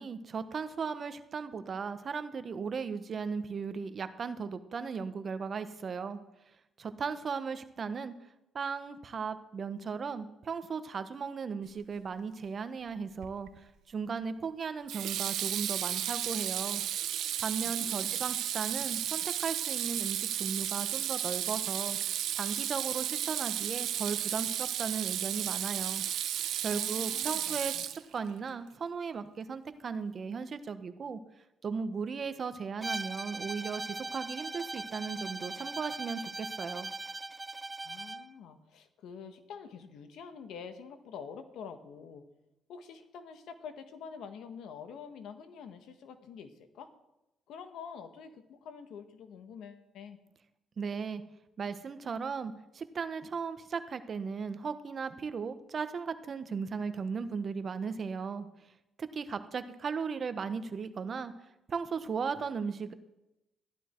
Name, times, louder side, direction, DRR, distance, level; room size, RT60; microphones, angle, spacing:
voice 1, 0.0-6.2 6.8-8.1 8.5-16.8 17.4-26.0 26.6-27.8 28.1-31.2 31.6-36.9 50.8-51.2 51.6-58.5 59.0-61.3 61.7-62.9, right 5 dB, 45° right, 11 dB, 1.1 m, -36 dB
Water tap faucet / Sink (filling or washing), 13.2-13.6 14.9-28.3, right 11 dB, 80° right, 0.8 m, -33 dB
voice 2, 17.6-18.2 26.7-27.8 37.8-42.2 42.7-46.9 47.5-50.2, left 6 dB, 80° left, 8 dB, 1.4 m, -47 dB
Bowed string instrument, 32.8-38.3, right 3 dB, 20° right, 0.4 m, -39 dB
14.0 x 12.0 x 4.5 m, 0.91 s
cardioid pair, 90°, 0 cm